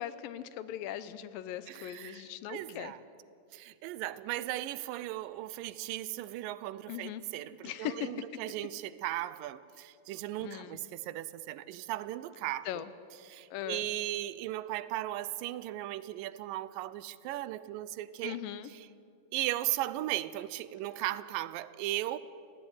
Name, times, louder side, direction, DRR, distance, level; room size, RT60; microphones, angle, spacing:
voice 1, 0.0-2.9 6.9-7.2 7.6-8.1 10.4-10.8 12.7-12.9 13.5-13.9 18.2-18.7, left 12 dB, 90° left, 2.5 m, -39 dB
voice 2, 1.7-3.0 3.5-12.8 13.2-18.4 18.7-18.8 19.3-22.2, right 15 dB, 80° right, 2.2 m, -37 dB
18.0 x 15.0 x 9.6 m
omnidirectional pair, 4.0 m